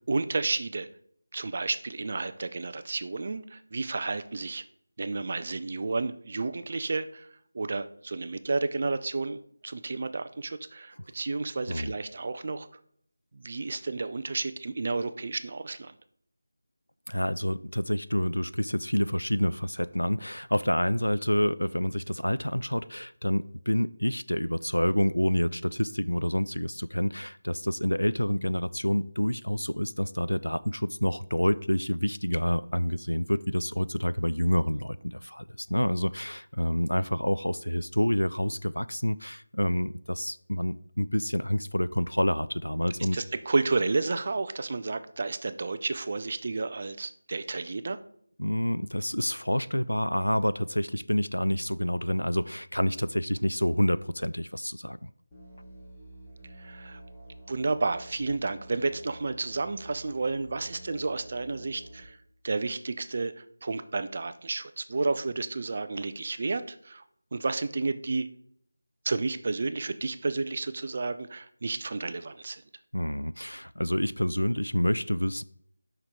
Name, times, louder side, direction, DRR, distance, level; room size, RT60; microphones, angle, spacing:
voice 1, 0.1-0.9 1.3-4.6 5.0-7.3 7.5-12.7 13.3-15.9 43.1-48.0 56.6-57.0 57.5-62.2 62.4-67.0 67.3-68.3 69.0-72.6, right 3 dB, 35° right, 12 dB, 0.4 m, -31 dB
voice 2, 17.1-43.2 48.4-55.1 72.9-75.4, equal, 80° left, 16 dB, 0.3 m, -28 dB
Musical instrument, 55.3-62.0, right 1 dB, 10° left, 1.5 m, -48 dB
7.0 x 5.8 x 3.5 m, 0.66 s
figure-of-eight pair, 165°, 0 cm